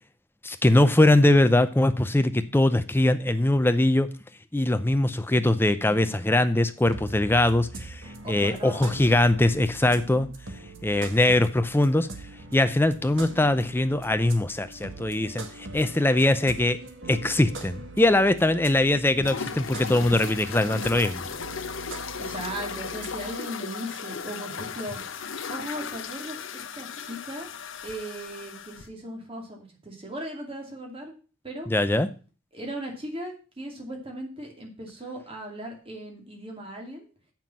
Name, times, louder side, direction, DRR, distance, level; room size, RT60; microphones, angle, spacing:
voice 1, 0.4-4.1 4.5-10.3 10.8-12.1 12.5-16.8 17.1-21.2 31.7-32.1, left 1 dB, 10° left, 10 dB, 0.6 m, -22 dB
voice 2, 5.8-6.1 6.5-6.6 8.2-8.9 9.9-10.3 22.2-25.0 25.5-27.5 27.8-31.1 31.4-31.7 32.5-37.1, right 1 dB, 30° right, 1 dB, 2.5 m, -38 dB
sound 1, 6.8-23.3, right 2 dB, 70° right, 1.7 m, -42 dB
sound 2, 19.2-28.9, left 6 dB, 75° left, 0.9 m, -36 dB
7.3 x 6.0 x 7.2 m, 0.36 s
head